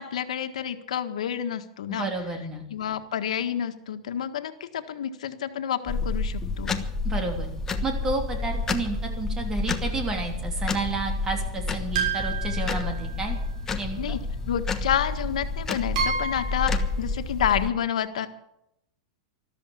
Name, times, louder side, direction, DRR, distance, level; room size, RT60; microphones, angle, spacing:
voice 1, 0.0-2.1 2.7-6.8 14.0-14.2 14.5-18.3, left 9 dB, 90° left, 8 dB, 1.6 m, -29 dB
voice 2, 1.9-2.6 7.0-7.5 7.8-13.4 13.8-14.2, right 3 dB, 15° right, 3 dB, 3.1 m, -31 dB
sound 1, 5.9-17.7, left 3 dB, 15° left, 1.2 m, -30 dB
sound 2, 11.9-13.5 14.9-15.0 15.9-16.8, right 5 dB, 70° right, 7.0 m, -30 dB
13.5 x 13.0 x 7.2 m, 0.80 s
supercardioid pair, 160°, 4 cm